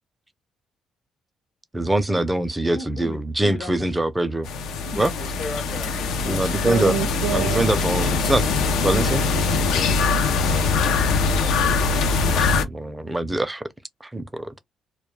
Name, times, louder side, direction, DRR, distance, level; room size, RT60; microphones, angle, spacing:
voice 1, 1.7-4.5 5.0-5.1 6.3-6.9 7.3-8.4 8.8-9.2 9.8-9.9 12.4-13.6 14.1-14.6, right 1 dB, 15° right, 0.5 m, -23 dB
voice 2, 2.7-3.9 4.9-6.9, left 3 dB, 45° left, 0.7 m, -36 dB
sound 1, 4.4-12.6, left 4 dB, 85° left, 0.4 m, -22 dB
voice 3, 6.5-10.2, right 8 dB, 85° right, 0.4 m, -31 dB
2.2 x 2.2 x 3.1 m
cardioid pair, 90°, 0 cm